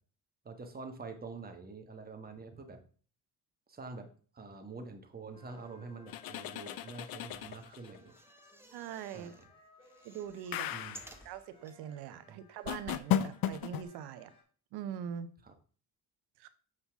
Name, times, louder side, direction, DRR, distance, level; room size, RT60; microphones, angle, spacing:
voice 1, 0.4-2.8 3.7-4.1 4.3-8.1 9.1-9.3 10.7-11.0 12.3-12.4 15.4-15.5, right 4 dB, 25° right, 5 dB, 1.4 m, -46 dB
sound 1, 5.3-14.4, left 2 dB, 15° left, 3.1 m, -62 dB
sound 2, 6.1-8.0 10.5-11.2 12.7-13.8, left 11 dB, 65° left, 0.7 m, -35 dB
sound 3, 7.3-9.5 9.8-11.8 12.4-12.5 12.6-12.7, right 1 dB, 5° right, 1.0 m, -56 dB
voice 2, 8.7-9.3 10.0-10.7 11.2-14.3 14.7-15.3 16.4-16.5, right 9 dB, 90° right, 12 dB, 0.9 m, -42 dB
7.8 x 5.6 x 3.6 m, 0.42 s
cardioid pair, 120°, 38 cm